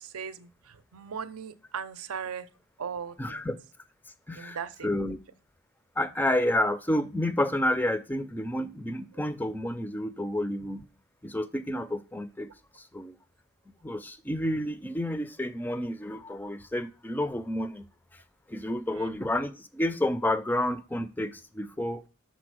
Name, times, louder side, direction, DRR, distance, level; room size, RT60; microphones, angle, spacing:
voice 1, 0.0-2.5 2.8-3.5 4.3-4.9 18.9-19.2, right 7 dB, 85° right, 0.6 m, -38 dB
voice 2, 3.2-3.6 4.3-4.6 4.8-5.2 6.0-10.8 11.2-12.5 12.8-13.1 13.8-17.8 18.5-22.0, left 1 dB, 10° left, 0.3 m, -30 dB
6.0 x 4.1 x 6.2 m
head